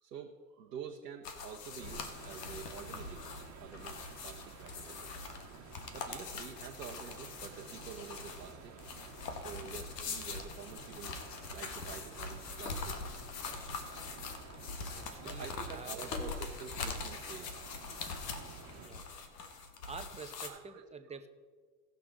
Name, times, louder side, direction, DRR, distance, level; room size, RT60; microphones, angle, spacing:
voice 1, 0.0-5.3 5.9-8.7 9.3-11.2 11.5-12.9 15.2-17.7 18.8-18.9 19.4-19.6 20.4-21.2, right 7 dB, 85° right, 1 dB, 1.0 m, -48 dB
sound 1, 1.2-20.5, left 4 dB, 80° left, 1.4 m, -43 dB
sound 2, 1.8-18.9, right 5 dB, 35° right, 1.5 m, -52 dB
voice 2, 14.9-15.9 18.8-19.1 19.8-21.3, right 5 dB, 15° right, 8 dB, 0.8 m, -48 dB
17.0 x 6.7 x 3.8 m, 1.5 s
hypercardioid pair, 90°, 48 cm